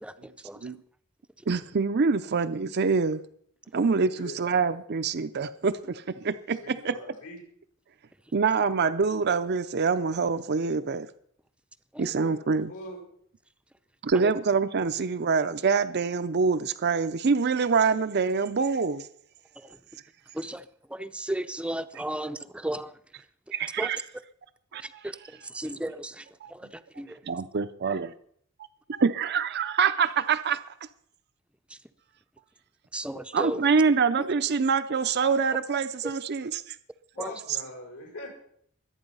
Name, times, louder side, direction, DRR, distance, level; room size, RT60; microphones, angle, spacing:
voice 1, 0.0-0.7 11.9-12.1 14.1-14.3 19.6-19.8 20.3-23.0 23.8-23.9 24.8-27.2 31.7-31.8 32.9-33.6 36.0-36.1 37.2-37.3, right 1 dB, 5° right, 0.6 m, -35 dB
voice 2, 1.5-3.2 3.7-6.9 8.3-11.1 12.0-12.7 14.0-19.1 23.5-24.0 24.7-24.8 26.4-26.5 27.3-28.1 28.9-30.6 33.3-36.8, right 5 dB, 50° right, 0.5 m, -25 dB
voice 3, 4.1-4.4 6.5-7.4 12.2-12.4 12.7-13.0 37.1-38.3, left 1 dB, 80° left, 5.7 m, -42 dB
23.0 x 8.9 x 5.5 m
head